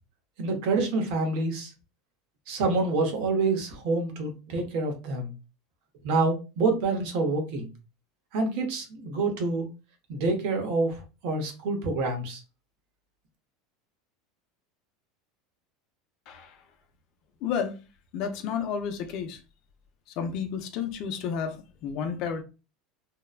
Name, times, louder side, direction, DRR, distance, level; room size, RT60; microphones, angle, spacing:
voice 1, 0.4-1.7 2.5-5.3 6.0-7.7 8.3-9.7 10.1-12.4, right 3 dB, 65° right, 0.9 m, -27 dB
voice 2, 16.3-16.6 17.4-17.7 18.1-19.4 20.2-22.4, left 7 dB, 55° left, 0.6 m, -31 dB
2.7 x 2.2 x 2.3 m
supercardioid pair, 125°, 0 cm